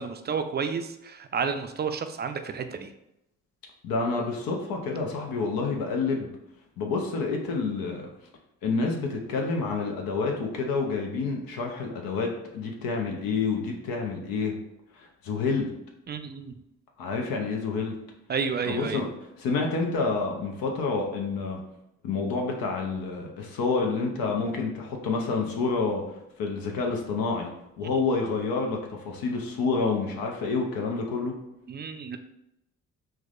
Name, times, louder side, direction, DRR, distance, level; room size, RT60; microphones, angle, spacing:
voice 1, 0.0-2.9 16.1-16.5 18.3-19.0 31.7-32.2, right 6 dB, 30° right, 8 dB, 0.4 m, -31 dB
voice 2, 3.8-6.3 6.8-8.1 8.6-14.5 14.9-15.7 17.0-18.0 18.6-19.1 19.4-21.6 22.0-26.0 26.4-27.5 27.8-31.4, left 4 dB, 70° left, 1 dB, 0.7 m, -28 dB
4.6 x 2.2 x 2.4 m, 0.83 s
supercardioid pair, 55°, 36 cm